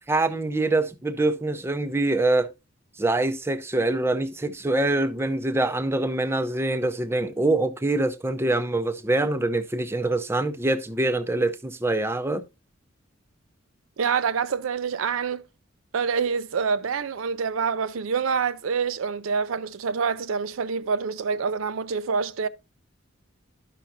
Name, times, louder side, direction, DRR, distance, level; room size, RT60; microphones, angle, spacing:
voice 1, 0.1-2.5 3.0-12.4, right 2 dB, 10° right, 0.5 m, -24 dB
voice 2, 14.0-15.4 15.9-22.5, right 6 dB, 80° right, 0.5 m, -26 dB
12.0 x 5.8 x 2.5 m
head